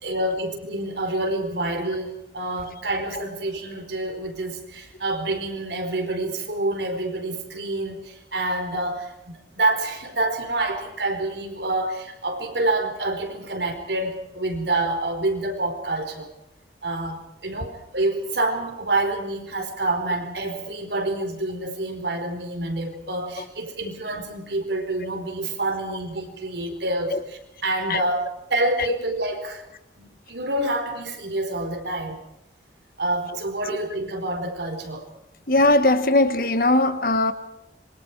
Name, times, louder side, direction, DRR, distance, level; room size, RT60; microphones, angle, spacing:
voice 1, 0.0-16.3 16.8-28.2 28.5-29.7 30.0-32.2 33.0-35.1, right 2 dB, 80° right, 4.8 m, -27 dB
voice 2, 35.5-37.3, left 2 dB, 50° left, 1.5 m, -19 dB
26.5 x 23.5 x 4.8 m
head